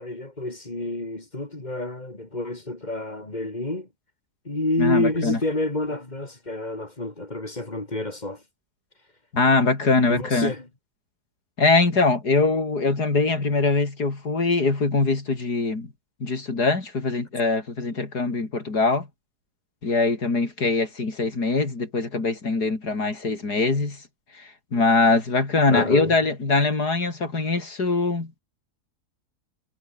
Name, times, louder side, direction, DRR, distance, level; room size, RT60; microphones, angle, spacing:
voice 1, 0.0-3.9 4.4-8.4 10.1-10.7 25.7-26.1, left 2 dB, 25° left, 3.2 m, -28 dB
voice 2, 4.8-5.4 9.3-10.5 11.6-15.9 16.2-19.1 19.8-24.0 24.4-28.4, left 3 dB, 90° left, 4.7 m, -22 dB
omnidirectional pair, 1.7 m